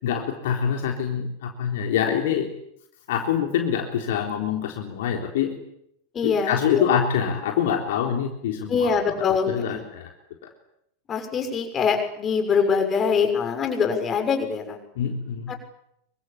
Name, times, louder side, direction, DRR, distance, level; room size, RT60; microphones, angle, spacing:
voice 1, 0.0-2.5 3.1-5.5 6.2-8.9 9.5-10.1 15.0-15.5, left 8 dB, 55° left, 3 dB, 3.7 m, -25 dB
voice 2, 6.1-6.8 8.7-9.8 11.1-14.8 15.5-15.6, left 6 dB, 25° left, 5 dB, 6.7 m, -23 dB
27.0 x 24.5 x 8.8 m, 0.77 s
figure-of-eight pair, 90°, 0 cm